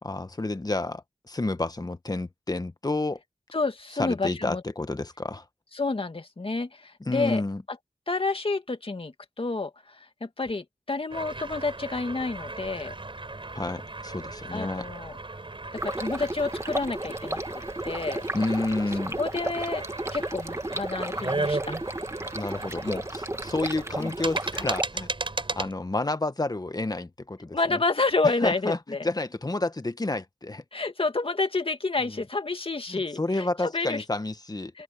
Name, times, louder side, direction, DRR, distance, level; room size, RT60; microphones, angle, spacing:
voice 1, 0.0-3.2 4.0-5.4 7.0-7.6 13.5-14.9 18.3-19.1 22.3-25.1 25.5-27.8 28.4-28.8 29.0-30.6 32.0-32.2 32.9-34.7, left 2 dB, 30° left, 1.4 m, -30 dB
voice 2, 3.5-4.6 5.7-7.4 8.1-13.0 14.5-15.2 15.8-17.4 17.8-18.2 19.2-19.8 20.1-21.8 24.0-24.1 27.5-29.1 30.7-34.0 34.7-34.8, left 3 dB, 50° left, 2.2 m, -29 dB
sound 1, 11.1-25.7, right 2 dB, 45° right, 5.1 m, -36 dB
Stream, 15.8-24.8, right 1 dB, 25° right, 1.8 m, -34 dB
open air
wide cardioid pair, 50°, 12 cm